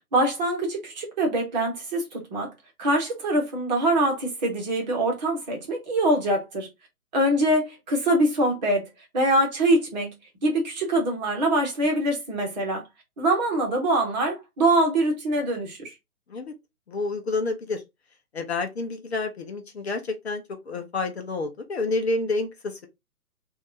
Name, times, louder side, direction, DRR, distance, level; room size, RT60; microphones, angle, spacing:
voice 1, 0.1-2.5 2.8-6.7 7.1-8.9 9.1-10.1 10.4-12.8 13.2-15.9, right 1 dB, 30° right, 1.3 m, -24 dB
voice 2, 16.9-17.8 18.3-22.9, left 3 dB, 45° left, 0.8 m, -29 dB
3.5 x 2.7 x 3.7 m
figure-of-eight pair, 135°, 45 cm